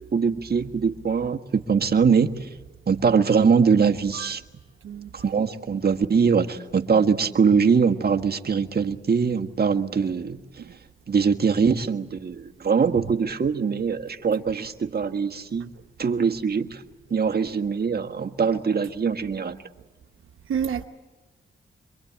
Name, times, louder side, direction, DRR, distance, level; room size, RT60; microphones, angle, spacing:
voice 1, 0.0-2.5 2.9-4.4 5.1-10.4 11.1-15.7 16.0-16.8 17.1-19.6, right 5 dB, 50° right, 1.6 m, -22 dB
voice 2, 20.5-20.8, right 8 dB, 85° right, 1.0 m, -29 dB
27.0 x 23.5 x 8.8 m
cardioid pair, 60°, 20 cm